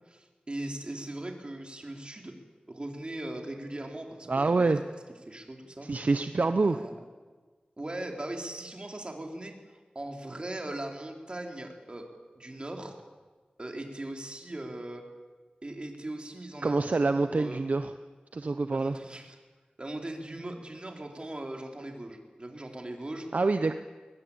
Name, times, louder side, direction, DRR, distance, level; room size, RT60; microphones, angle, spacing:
voice 1, 0.0-2.3 2.7-4.8 5.3-5.9 6.6-7.0 7.8-9.6 9.9-12.1 12.4-13.0 13.6-15.0 15.6-16.8 17.2-17.6 18.7-19.4 19.8-23.3, right 1 dB, 35° right, 2 dB, 4.0 m, -39 dB
voice 2, 4.3-4.8 5.8-6.8 16.6-17.9 18.3-19.0 23.3-23.7, right 3 dB, 60° right, 9 dB, 0.9 m, -26 dB
22.0 x 20.0 x 8.9 m, 1.4 s
wide cardioid pair, 65°, 3 cm